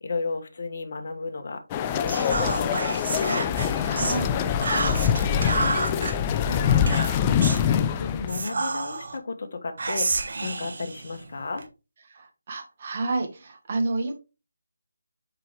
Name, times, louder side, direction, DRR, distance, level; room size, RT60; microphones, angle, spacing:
voice 1, 0.0-1.6 1.9-3.5 4.7-4.9 5.2-11.6, left 4 dB, 45° left, 6 dB, 1.3 m, -34 dB
sound 1, 1.7-8.4, left 8 dB, 20° left, 0.4 m, -24 dB
Whispering, 2.1-4.2 4.6-6.1 6.9-7.7 8.3-9.2 9.8-11.7, right 3 dB, 55° right, 1.4 m, -29 dB
voice 2, 3.8-4.3 12.1-14.1, right 3 dB, 35° right, 4 dB, 1.7 m, -29 dB
7.5 x 4.5 x 3.4 m, 0.29 s
figure-of-eight pair, 165°, 0 cm